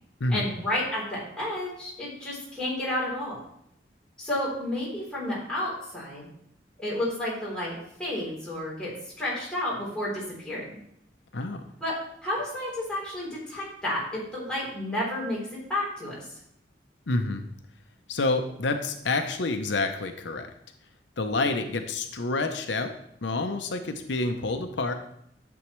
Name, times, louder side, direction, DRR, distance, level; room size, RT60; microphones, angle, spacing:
voice 1, 0.3-3.4 4.2-6.3 6.8-7.7 8.0-8.9 9.2-10.8 11.8-11.9 12.2-16.3, left 1 dB, 5° left, -7 dB, 3.6 m, -31 dB
voice 2, 11.3-11.6 17.1-17.4 18.1-20.5 21.2-24.9, left 2 dB, 80° left, 7 dB, 0.7 m, -28 dB
11.5 x 7.0 x 3.1 m, 0.73 s
head